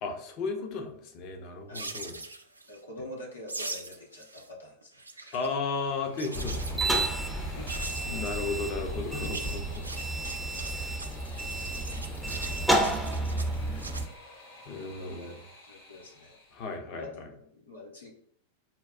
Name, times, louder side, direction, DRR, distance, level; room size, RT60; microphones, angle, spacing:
voice 1, 0.0-2.2 5.3-7.6 8.0-9.8 13.7-13.9 14.7-15.4 16.5-17.3, left 4 dB, 40° left, 5 dB, 0.7 m, -35 dB
sound 1, 1.7-2.8 3.5-4.5 4.8-5.5 6.2-7.0 7.7-8.4 9.1-14.1, right 2 dB, 80° right, 0.4 m, -41 dB
voice 2, 2.7-5.4 7.6-7.7 15.0-15.3 15.6-16.4 16.9-18.1, left 1 dB, 75° left, -1 dB, 0.9 m, -45 dB
sound 2, 5.7-16.7, left 2 dB, 55° left, 1.3 m, -50 dB
sound 3, 6.3-14.0, right 1 dB, ahead, 0.5 m, -31 dB
5.6 x 2.3 x 2.4 m, 0.67 s
figure-of-eight pair, 90°, 0 cm